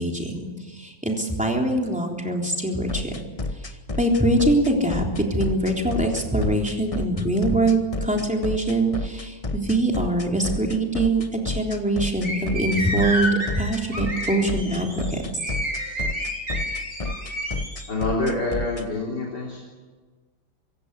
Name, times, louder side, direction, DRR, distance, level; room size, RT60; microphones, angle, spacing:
voice 1, 0.0-3.2 4.0-15.2, right 1 dB, 5° right, 1 dB, 3.5 m, -23 dB
sound 1, 2.9-18.8, left 2 dB, 20° left, 1.0 m, -30 dB
sound 2, 12.2-17.9, equal, 35° right, 5.8 m, -30 dB
voice 2, 17.9-19.6, left 2 dB, 55° left, -1 dB, 4.2 m, -26 dB
25.0 x 16.5 x 8.3 m, 1.4 s
omnidirectional pair, 2.1 m